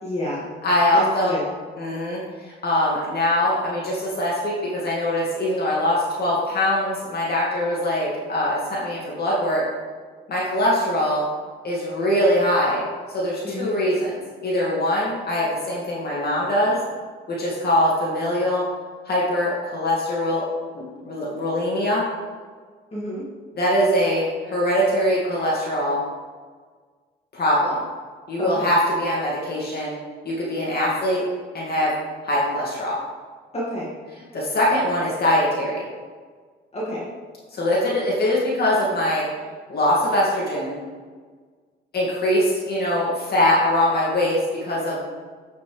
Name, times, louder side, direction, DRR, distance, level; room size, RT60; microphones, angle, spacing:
voice 1, 0.0-0.5 0.9-1.4 13.4-13.7 22.9-23.2 28.4-28.7 33.5-33.9 36.7-37.1, equal, 30° left, -7 dB, 2.3 m, -29 dB
voice 2, 0.6-1.4 1.8-9.6 10.3-11.2 11.6-12.8 13.1-16.8 17.3-18.6 19.0-20.4 20.7-22.0 23.5-26.0 27.3-27.8 28.3-29.9 30.2-31.3 31.5-31.9 32.2-33.0 34.3-35.8 37.5-39.2 39.7-40.8 41.9-45.0, left 1 dB, 50° left, -6 dB, 2.4 m, -22 dB
9.5 x 6.0 x 3.4 m, 1.6 s
cardioid pair, 90°, 20 cm